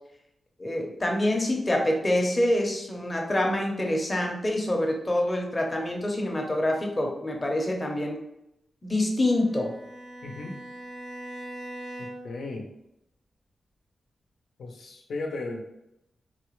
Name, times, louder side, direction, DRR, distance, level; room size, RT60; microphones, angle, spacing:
voice 1, 0.6-8.2 8.8-9.8, left 1 dB, 25° left, 1 dB, 0.7 m, -26 dB
Bowed string instrument, 9.3-12.5, right 1 dB, 90° right, 1.2 m, -41 dB
voice 2, 10.2-10.5 12.0-12.6 14.6-15.6, left 2 dB, 80° left, 2 dB, 0.7 m, -35 dB
4.1 x 2.2 x 3.0 m, 0.83 s
wide cardioid pair, 95°, 0 cm